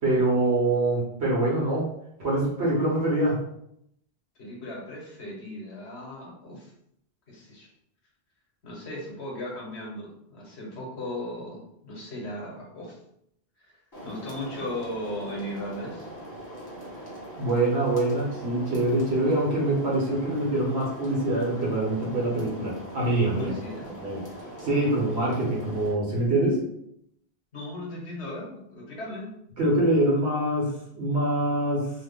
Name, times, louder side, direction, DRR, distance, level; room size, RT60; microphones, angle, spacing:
voice 1, 0.0-1.9 2.2-3.4 17.4-23.5 24.0-24.2 24.6-26.6 29.6-31.9, right 1 dB, 75° right, -4 dB, 1.2 m, -24 dB
voice 2, 4.4-6.7 7.3-7.7 8.6-13.0 13.6-16.1 23.4-24.0 27.5-29.3, left 1 dB, 80° left, -3 dB, 1.3 m, -37 dB
sound 1, 13.9-25.9, equal, 20° left, 1.0 m, -41 dB
3.1 x 2.1 x 3.5 m, 0.75 s
omnidirectional pair, 1.1 m